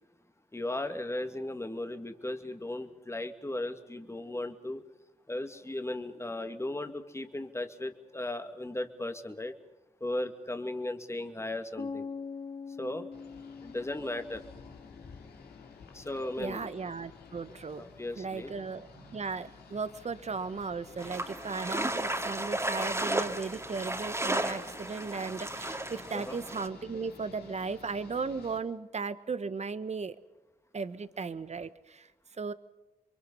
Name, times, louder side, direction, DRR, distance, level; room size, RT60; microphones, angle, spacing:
voice 1, 0.5-4.8 5.3-9.5 10.0-12.1 12.8-13.1 13.6-14.4 15.9-16.7 17.7-18.6 26.1-26.4, left 1 dB, 15° left, 7 dB, 2.3 m, -36 dB
sound 1, 11.8-15.7, left 5 dB, 40° left, 1.0 m, -43 dB
sound 2, 13.1-28.6, left 5 dB, 90° left, 3.0 m, -52 dB
voice 2, 16.4-17.9 18.2-30.2 30.7-32.1 32.4-32.5, right 4 dB, 45° right, 13 dB, 1.4 m, -36 dB
sound 3, 21.0-26.7, right 1 dB, 15° right, 2.7 m, -34 dB
28.0 x 23.5 x 5.7 m, 0.98 s
supercardioid pair, 50°, 16 cm